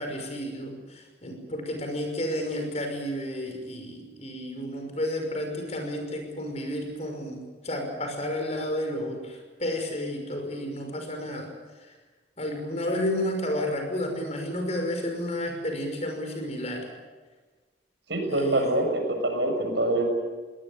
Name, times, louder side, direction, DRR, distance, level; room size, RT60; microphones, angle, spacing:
voice 1, 0.0-11.5 12.4-16.9 18.2-18.7, left 1 dB, 35° left, 4 dB, 5.9 m, -31 dB
voice 2, 18.1-20.0, right 1 dB, 75° right, 3 dB, 6.7 m, -25 dB
24.0 x 18.5 x 9.1 m, 1.3 s
head